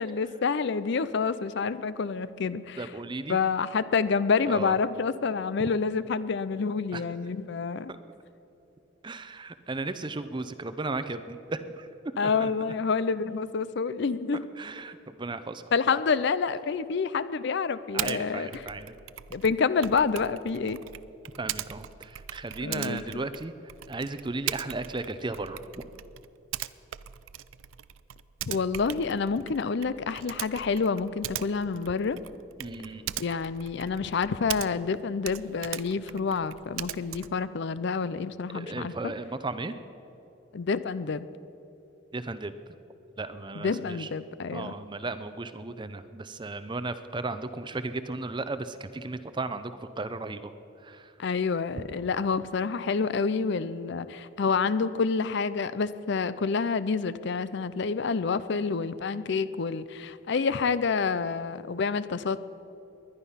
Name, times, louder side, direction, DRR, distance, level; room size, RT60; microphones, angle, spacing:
voice 1, 0.0-2.9 3.3-7.9 12.2-14.5 15.7-18.6 19.3-20.8 22.6-23.3 28.5-32.2 33.2-38.9 40.5-41.3 43.6-44.7 51.2-62.4, left 5 dB, 60° left, 15 dB, 0.5 m, -28 dB
voice 2, 2.8-3.4 4.5-4.7 6.9-7.0 9.0-11.9 12.2-12.5 14.6-15.6 15.9-16.0 17.9-18.9 21.4-23.5 23.9-25.6 32.6-33.0 38.5-39.8 42.1-42.6 43.2-44.1 44.5-50.5 50.8-51.1, right 3 dB, 25° right, 11 dB, 0.6 m, -35 dB
Typing, 18.0-18.2 18.5-35.0 35.2-37.4, right 12 dB, 90° right, 0.4 m, -39 dB
20.0 x 11.0 x 5.7 m, 2.9 s
head